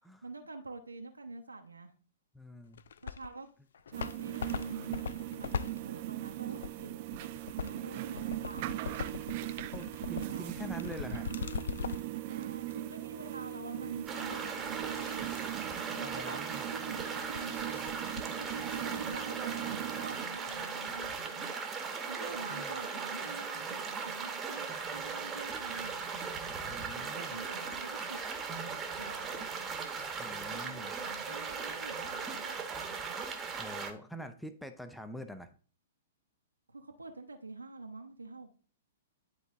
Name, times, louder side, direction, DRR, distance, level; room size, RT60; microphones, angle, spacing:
voice 1, 0.2-1.9 3.0-3.5 3.9-5.0 5.3-7.3 7.6-8.8 10.2-10.5 12.2-15.3 15.9-16.4 16.7-17.9 18.3-21.6 22.1-26.0 27.0-29.5 30.5-32.6 36.7-38.5, right 3 dB, 85° right, 4 dB, 0.8 m, -46 dB
voice 2, 2.3-2.8 9.7-11.3 16.0-16.6 22.5-22.7 26.6-27.4 30.2-30.9 33.6-35.5, equal, ahead, 8 dB, 0.7 m, -45 dB
sound 1, 2.7-3.4 3.7-12.2 12.7-12.8 14.3-19.2, left 7 dB, 65° left, 0.3 m, -42 dB
sound 2, 3.9-20.3, right 17 dB, 45° right, 0.4 m, -40 dB
sound 3, 14.1-33.9, right 5 dB, 20° right, 1.1 m, -38 dB
10.5 x 4.0 x 3.6 m, 0.41 s
figure-of-eight pair, 110°, 0 cm